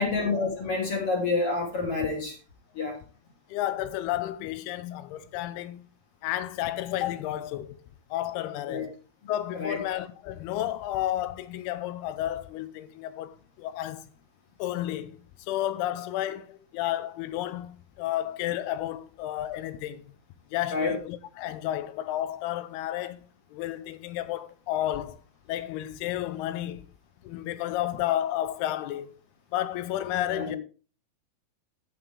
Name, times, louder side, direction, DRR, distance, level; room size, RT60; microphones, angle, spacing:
voice 1, 0.0-2.4 2.7-3.0 8.7-8.9 9.5-9.8 20.7-20.9 30.3-30.6, left 3 dB, 40° left, 3.2 m, -28 dB
voice 2, 3.5-5.8 6.2-7.8 8.1-8.9 9.3-14.1 14.6-15.2 15.5-20.0 20.5-23.2 23.5-25.2 25.5-26.9 27.2-29.1 29.5-30.6, left 13 dB, 85° left, 2.7 m, -31 dB
9.6 x 9.4 x 3.4 m
omnidirectional pair, 4.7 m